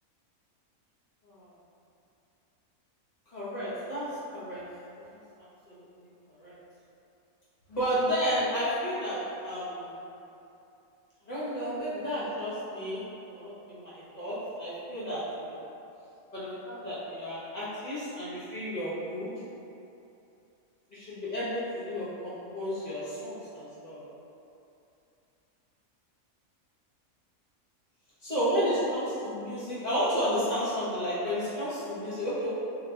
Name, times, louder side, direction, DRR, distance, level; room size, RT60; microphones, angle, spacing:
voice 1, 3.3-4.7 5.0-5.2 5.7-5.8 6.3-6.5 7.7-10.0 11.2-15.6 16.3-19.3 20.9-24.0 28.2-32.5, equal, 35° left, -11 dB, 1.0 m, -32 dB
4.0 x 2.8 x 2.3 m, 2.8 s
omnidirectional pair, 1.5 m